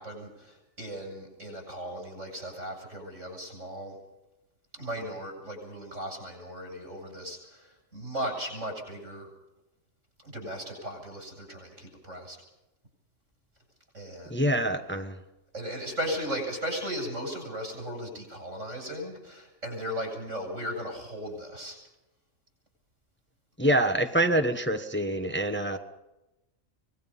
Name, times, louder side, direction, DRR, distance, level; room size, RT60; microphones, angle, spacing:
voice 1, 0.0-4.0 4.7-9.3 10.2-12.4 13.9-14.5 15.5-21.8, equal, 80° right, 2 dB, 7.6 m, -37 dB
voice 2, 14.3-15.2 23.6-25.8, right 1 dB, 10° left, 7 dB, 1.1 m, -26 dB
25.0 x 19.5 x 5.6 m, 0.97 s
omnidirectional pair, 1.3 m